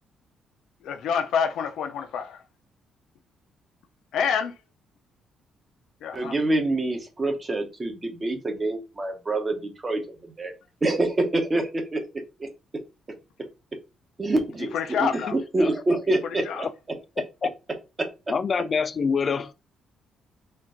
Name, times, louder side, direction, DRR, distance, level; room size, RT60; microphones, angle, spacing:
voice 1, 0.8-2.4 4.1-4.5 6.0-6.4 14.7-15.4 16.2-16.7, left 7 dB, 70° left, 0.6 m, -27 dB
voice 2, 6.1-10.0 10.4-10.5 10.8-12.0 12.4-12.5 14.2-14.7 15.0-16.7, right 2 dB, 20° right, 0.8 m, -26 dB
voice 3, 17.2-17.5 18.3-19.5, left 5 dB, 30° left, 0.3 m, -26 dB
4.3 x 2.5 x 3.7 m
cardioid pair, 165°, 0 cm